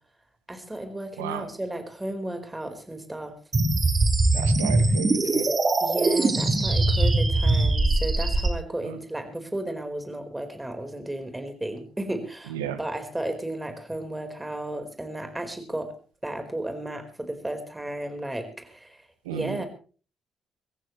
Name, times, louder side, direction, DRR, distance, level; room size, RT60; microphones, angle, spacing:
voice 1, 0.5-3.3 5.8-15.9 16.2-19.7, right 1 dB, 15° right, 6 dB, 4.5 m, -34 dB
sound 1, 3.5-8.5, right 2 dB, 35° right, 4.5 m, -22 dB
voice 2, 4.3-5.5 12.5-12.8 19.2-19.6, right 10 dB, 90° right, 11 dB, 1.3 m, -33 dB
25.0 x 14.5 x 3.2 m, 0.38 s
hypercardioid pair, 45°, 0 cm